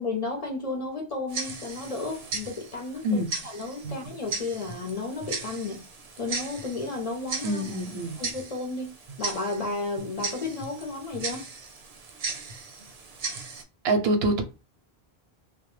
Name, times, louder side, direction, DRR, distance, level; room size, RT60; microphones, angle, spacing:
voice 1, 0.0-3.2 3.5-5.8 6.2-7.6 8.2-8.9 9.2-11.5, left 3 dB, 45° left, 0.5 m, -33 dB
Tick-tock, 1.3-13.6, right 4 dB, 50° right, 0.5 m, -37 dB
voice 2, 7.4-8.2 13.8-14.4, right 1 dB, 80° right, 0.8 m, -25 dB
2.2 x 2.1 x 3.0 m
omnidirectional pair, 1.0 m